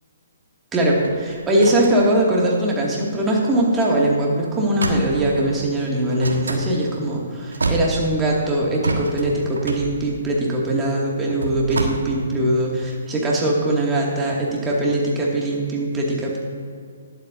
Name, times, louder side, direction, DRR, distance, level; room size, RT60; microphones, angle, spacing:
voice 1, 0.7-16.4, right 1 dB, 15° right, -3 dB, 2.2 m, -21 dB
sound 1, 0.9-3.3 3.7-3.9 4.1-4.3 4.8-5.6 6.2-6.7 7.2-7.3 7.5-8.4 8.8-11.8, right 2 dB, 75° right, 1.4 m, -28 dB
20.5 x 7.8 x 2.7 m, 2.3 s
figure-of-eight pair, 130°, 0 cm